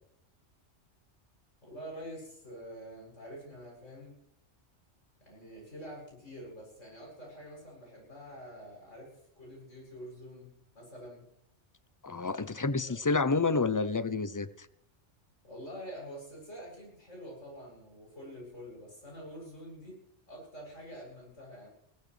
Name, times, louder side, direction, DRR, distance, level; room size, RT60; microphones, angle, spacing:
voice 1, 1.6-4.1 5.2-11.2 12.2-12.9 15.4-20.0 20.3-21.7, equal, 90° left, -3 dB, 8.5 m, -47 dB
voice 2, 12.0-14.7, left 3 dB, 30° left, 14 dB, 0.3 m, -29 dB
21.0 x 17.0 x 3.3 m, 0.71 s
omnidirectional pair, 1.2 m